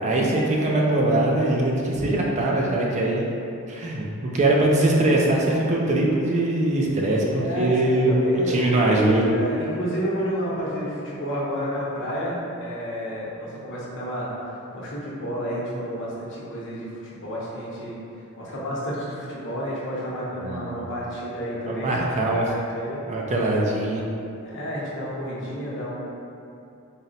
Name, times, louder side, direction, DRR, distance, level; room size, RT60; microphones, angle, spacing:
voice 1, 0.0-3.2 3.7-9.4 20.4-20.7 21.7-22.5 23.1-24.0, right 1 dB, 30° right, -2 dB, 0.4 m, -22 dB
voice 2, 7.3-7.8 8.0-8.7 9.2-14.3 14.7-18.0 18.4-23.0 24.4-25.9, equal, 55° left, -6 dB, 0.8 m, -31 dB
4.0 x 2.1 x 3.9 m, 2.8 s
head